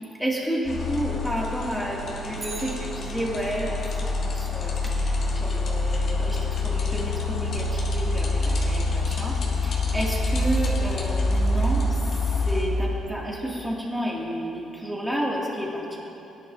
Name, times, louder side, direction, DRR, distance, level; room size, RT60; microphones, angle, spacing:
voice 1, 0.2-9.4 9.6-11.9 12.4-16.0, equal, 5° right, -4 dB, 2.3 m, -31 dB
sound 1, 0.6-12.6, left 2 dB, 60° left, 2.1 m, -26 dB
Bicycle, 2.3-3.7 12.0-12.1, right 3 dB, 45° right, 2.9 m, -42 dB
17.0 x 10.5 x 2.7 m, 2.9 s
cardioid pair, 90°, 0 cm